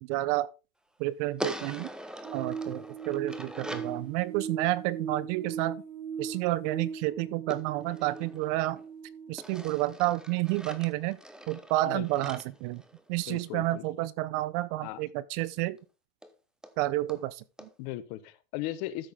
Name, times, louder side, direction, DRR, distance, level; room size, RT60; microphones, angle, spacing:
voice 1, 0.0-0.5 1.0-1.9 2.3-5.8 6.2-8.8 9.3-11.2 11.5-12.8 13.1-15.8 16.8-17.7, right 17 dB, 55° right, 0.7 m, -30 dB
sound 1, 1.4-4.0 7.5-8.9 9.4-13.5 15.4-15.5 15.8-15.9 16.2-16.3 16.6-16.7 17.1-17.2 17.6-17.7, equal, ahead, 0.8 m, -42 dB
sound 2, 2.2-9.3, right 6 dB, 85° right, 1.9 m, -39 dB
voice 2, 11.8-12.3 13.3-13.8 14.8-15.0 17.8-19.1, left 15 dB, 55° left, 1.2 m, -37 dB
13.0 x 6.2 x 3.6 m
supercardioid pair, 130°, 42 cm